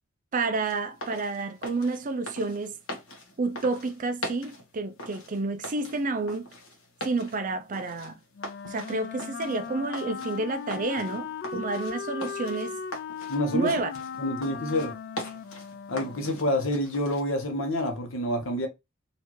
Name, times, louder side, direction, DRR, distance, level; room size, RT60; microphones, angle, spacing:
voice 1, 0.3-2.8 3.4-6.5 7.0-8.2 8.6-12.8 13.5-13.9, right 3 dB, 40° right, 0.4 m, -30 dB
sound 1, 0.6-17.2, equal, 90° left, 1.2 m, -42 dB
Wind instrument woodwind instrument, 8.3-16.6, left 6 dB, 50° left, 0.3 m, -38 dB
voice 2, 13.3-13.8 14.2-14.9 15.9-18.7, left 1 dB, 65° left, 1.1 m, -28 dB
4.2 x 2.6 x 3.0 m
head